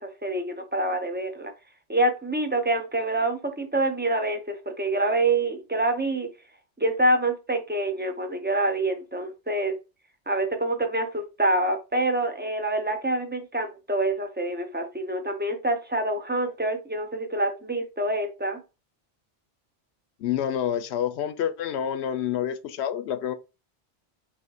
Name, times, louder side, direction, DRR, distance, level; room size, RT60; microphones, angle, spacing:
voice 1, 0.0-1.5 1.9-6.3 6.8-9.7 10.3-18.6, right 2 dB, 15° right, 0.3 m, -26 dB
voice 2, 20.2-23.3, left 9 dB, 70° left, 0.8 m, -28 dB
4.1 x 2.7 x 4.0 m
omnidirectional pair, 1.2 m